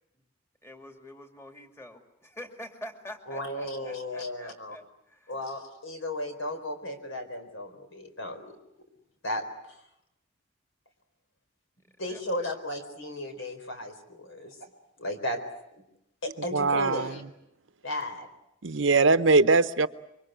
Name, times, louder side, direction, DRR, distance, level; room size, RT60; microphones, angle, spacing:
voice 1, 0.6-5.4 12.1-12.5, left 1 dB, 15° left, 5 dB, 2.5 m, -46 dB
voice 2, 3.3-4.8 5.3-8.5 9.2-9.4 12.0-14.7 15.0-15.4 16.2-17.2 17.8-18.3, left 1 dB, 75° left, 7 dB, 4.2 m, -35 dB
voice 3, 16.5-17.2 18.6-19.9, right 3 dB, 65° right, 13 dB, 0.9 m, -21 dB
26.5 x 24.0 x 8.0 m, 0.83 s
head